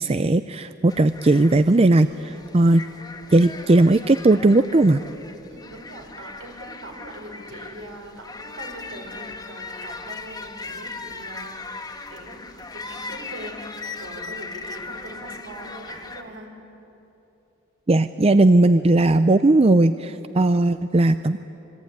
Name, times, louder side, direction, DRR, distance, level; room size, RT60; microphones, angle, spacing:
voice 1, 0.0-2.8 3.3-5.0 17.9-21.4, right 2 dB, 30° right, 11 dB, 0.5 m, -17 dB
sound 1, 0.9-16.2, left 3 dB, 20° left, 1.4 m, -38 dB
voice 2, 5.5-13.7 14.0-16.5, right 1 dB, 75° right, 2 dB, 5.6 m, -41 dB
26.0 x 21.5 x 9.5 m, 3.0 s
head